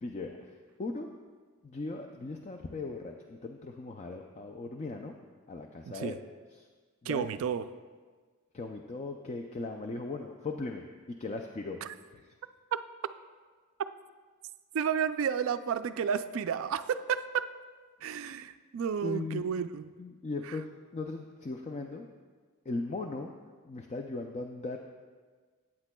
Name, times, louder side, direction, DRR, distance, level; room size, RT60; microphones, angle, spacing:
voice 1, 0.0-0.4 0.8-1.1 1.6-5.1 5.5-6.2 6.6-6.7 7.0-7.3 8.5-11.8 12.1-12.2 19.0-19.4 20.0-22.1 22.7-23.3 23.6-24.8, left 3 dB, 30° left, 3 dB, 0.4 m, -38 dB
voice 2, 5.8-6.2 7.1-7.6 11.8-11.9 12.7-12.8 14.7-17.4 18.0-19.9 20.4-20.6, right 7 dB, 60° right, 12 dB, 0.3 m, -31 dB
14.0 x 8.7 x 2.2 m, 1.5 s
head